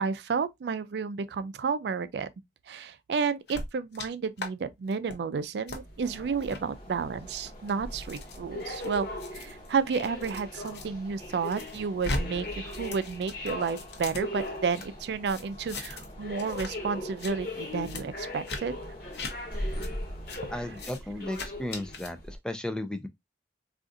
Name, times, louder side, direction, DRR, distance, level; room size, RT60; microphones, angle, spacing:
voice 1, 0.0-2.3 2.7-18.7 20.5-20.8, right 5 dB, 70° right, 0.4 m, -31 dB
sound 1, 3.5-4.1 4.4-4.5 4.9-5.2 5.7-5.8 6.4-6.6 7.3-10.9 11.2-12.2 12.5-14.9 15.2-16.1 16.4-16.7 17.0-17.3 17.8-18.0 18.4-18.6 19.1-19.3 19.8-19.9 20.3-20.4 20.7-21.0 21.3-22.1, left 2 dB, 70° left, 0.8 m, -38 dB
sound 2, 5.7-22.4, left 1 dB, 50° left, 1.0 m, -39 dB
sound 3, 6.0-20.9, left 1 dB, 30° left, 0.8 m, -51 dB
voice 2, 20.5-23.1, left 1 dB, 5° left, 0.3 m, -35 dB
3.7 x 2.5 x 2.5 m
head